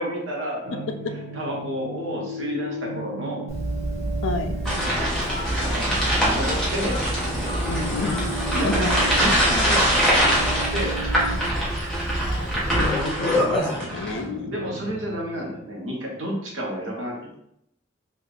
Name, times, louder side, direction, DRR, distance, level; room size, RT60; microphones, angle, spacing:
voice 1, 0.0-3.5 5.6-7.2 8.2-10.3 10.7-11.0 11.4-11.5 14.1-17.4, equal, 90° right, -2 dB, 1.2 m, -31 dB
sound 1, 0.6-15.8, right 2 dB, 70° right, 0.4 m, -37 dB
Telephone, 3.5-13.2, right 1 dB, 35° left, 1.0 m, -29 dB
voice 2, 4.2-4.6 7.6-8.3 8.6-8.9 12.7-14.5, left 4 dB, 75° left, 7 dB, 0.4 m, -30 dB
sound 2, 4.6-14.2, equal, 5° left, 1.3 m, -24 dB
4.3 x 2.5 x 3.4 m, 0.78 s
head